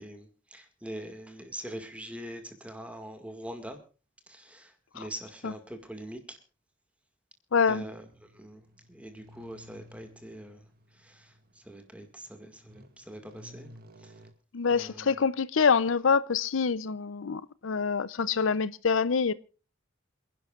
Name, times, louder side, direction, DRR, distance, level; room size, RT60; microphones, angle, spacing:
voice 1, 0.0-3.8 4.3-6.4 7.7-8.6 8.9-10.6 10.9-13.7 14.0-14.1 14.7-15.2, right 1 dB, 5° right, 2.0 m, -43 dB
voice 2, 7.5-7.8 14.5-19.3, left 5 dB, 90° left, 0.6 m, -26 dB
sound 1, 7.6-14.3, equal, 50° right, 2.0 m, -55 dB
27.5 x 11.0 x 2.4 m
head